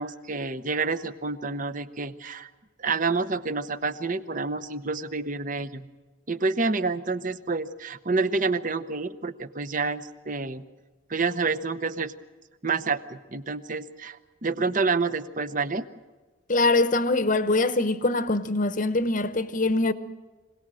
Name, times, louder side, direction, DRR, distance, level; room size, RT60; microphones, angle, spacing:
voice 1, 0.0-2.5 2.8-5.9 6.3-10.6 11.1-12.1 12.6-15.9, right 4 dB, 40° right, 0.8 m, -28 dB
voice 2, 16.5-19.9, left 2 dB, 40° left, 0.9 m, -23 dB
25.5 x 18.0 x 7.6 m
head